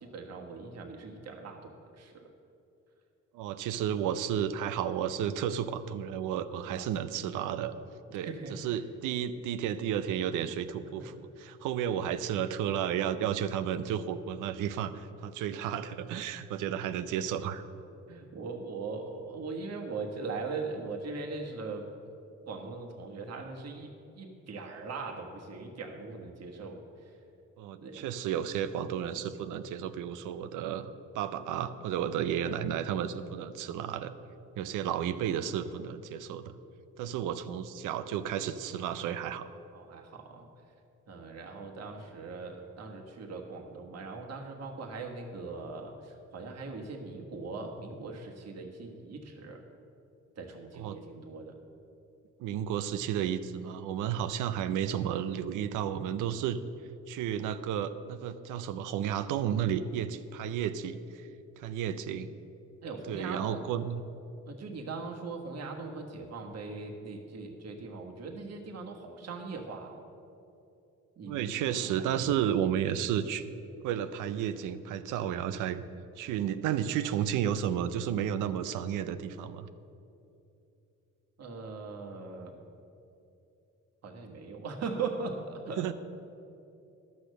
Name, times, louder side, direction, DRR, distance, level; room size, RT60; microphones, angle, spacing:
voice 1, 0.0-2.3 6.7-6.9 8.2-8.8 11.0-11.1 18.1-21.9 22.5-26.8 27.8-28.1 39.7-40.5 41.1-49.6 50.4-51.6 62.8-63.6 64.5-70.0 71.2-72.3 81.4-82.6 84.0-85.9, right 4 dB, 55° right, 2 dB, 1.4 m, -40 dB
voice 2, 3.3-7.7 8.1-17.6 27.6-34.1 34.6-36.5 37.0-39.5 50.8-51.0 52.4-56.6 57.1-61.3 61.6-62.3 63.1-64.0 71.3-73.5 73.8-75.8 76.2-79.7 85.8-85.9, right 9 dB, 90° right, 12 dB, 0.6 m, -32 dB
12.0 x 6.5 x 6.6 m, 2.7 s
cardioid pair, 90°, 30 cm